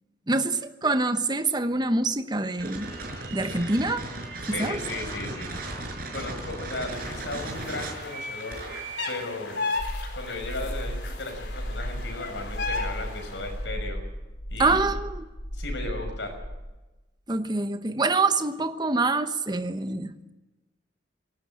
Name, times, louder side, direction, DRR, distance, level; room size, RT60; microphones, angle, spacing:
voice 1, 0.3-2.9 3.3-4.1 4.5-4.8 14.6-15.2 17.3-20.3, right 3 dB, 25° right, 9 dB, 1.1 m, -25 dB
sound 1, 2.6-9.2, right 2 dB, 50° right, 5.5 m, -36 dB
voice 2, 4.4-5.5 6.1-8.6 9.1-9.6 10.1-14.0 14.5-14.8 15.5-16.4, left 2 dB, 85° left, 4 dB, 6.0 m, -35 dB
sound 2, 6.9-13.5, left 3 dB, 65° left, 4.2 m, -36 dB
sound 3, 9.8-16.6, equal, 40° left, 6.8 m, -34 dB
20.5 x 17.5 x 9.0 m, 1.1 s
head